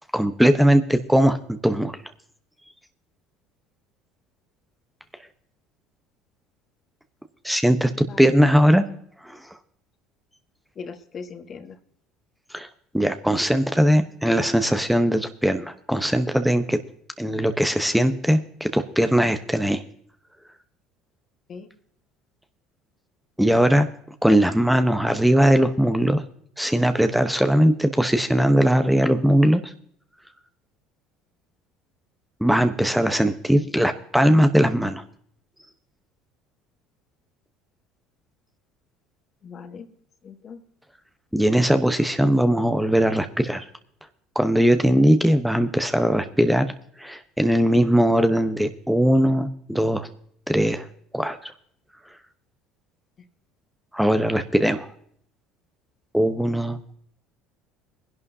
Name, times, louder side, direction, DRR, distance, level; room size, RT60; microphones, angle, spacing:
voice 1, 0.1-1.4 1.6-1.9 7.4-8.8 9.2-9.4 12.5-12.7 12.9-16.8 17.2-19.8 23.4-23.9 24.2-26.2 26.6-29.7 32.4-35.0 41.3-43.7 44.3-46.7 47.0-50.1 50.5-50.9 51.1-51.5 53.9-54.9 56.1-56.8, equal, ahead, 8 dB, 1.0 m, -20 dB
voice 2, 7.9-8.3 10.7-11.8 21.5-21.7 39.4-39.9 40.2-40.6 53.2-53.3, left 5 dB, 40° left, 8 dB, 1.5 m, -40 dB
21.5 x 11.0 x 2.8 m, 0.63 s
hypercardioid pair, 75°, 0 cm